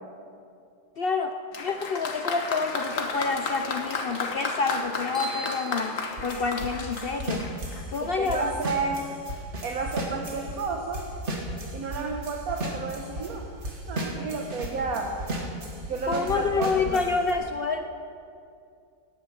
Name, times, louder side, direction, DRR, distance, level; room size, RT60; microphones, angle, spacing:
voice 1, 1.0-1.3 1.6-7.4 7.9-8.5 16.1-17.9, left 4 dB, 75° left, 6 dB, 0.5 m, -28 dB
Applause, 1.5-8.0 8.9-9.0, left 4 dB, 55° left, 1.5 m, -33 dB
sound 1, 5.1-6.9, right 4 dB, ahead, 3.1 m, -41 dB
sound 2, 6.2-10.7 10.9-13.3 13.6-17.3, right 1 dB, 40° right, 2.1 m, -35 dB
voice 2, 8.0-9.0 9.6-11.1 11.7-13.5 13.9-15.1 15.9-17.0, right 4 dB, 60° right, 1 dB, 1.5 m, -31 dB
17.5 x 10.5 x 5.8 m, 2.4 s
omnidirectional pair, 1.8 m